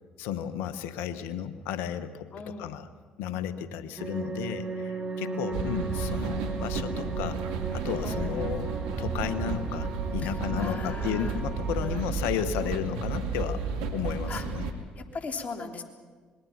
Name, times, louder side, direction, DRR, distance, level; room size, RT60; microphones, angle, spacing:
voice 1, 0.2-2.9 3.2-7.4 7.7-8.7 9.0-13.6 13.9-14.7, left 9 dB, 80° left, 12 dB, 1.3 m, -33 dB
voice 2, 2.3-2.8 8.0-8.5 10.2-11.4 11.7-12.2 12.6-12.7 14.3-14.5 15.0-15.8, left 4 dB, 45° left, 4 dB, 3.4 m, -39 dB
sound 1, 4.0-11.7, right 3 dB, 30° right, 4.1 m, -36 dB
sound 2, 5.5-14.7, right 5 dB, 85° right, 2.3 m, -32 dB
26.0 x 21.5 x 5.9 m, 1.5 s
hypercardioid pair, 55°, 4 cm